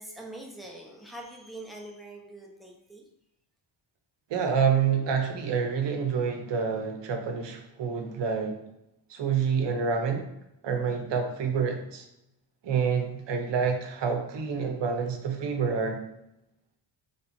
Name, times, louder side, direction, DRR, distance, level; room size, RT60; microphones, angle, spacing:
voice 1, 0.0-3.0, right 1 dB, ahead, -2 dB, 0.6 m, -43 dB
voice 2, 4.3-8.6 9.1-10.3 10.6-12.0 12.6-16.0, right 6 dB, 60° right, 4 dB, 0.9 m, -27 dB
3.3 x 2.9 x 4.2 m, 0.84 s
cardioid pair, 145°, 47 cm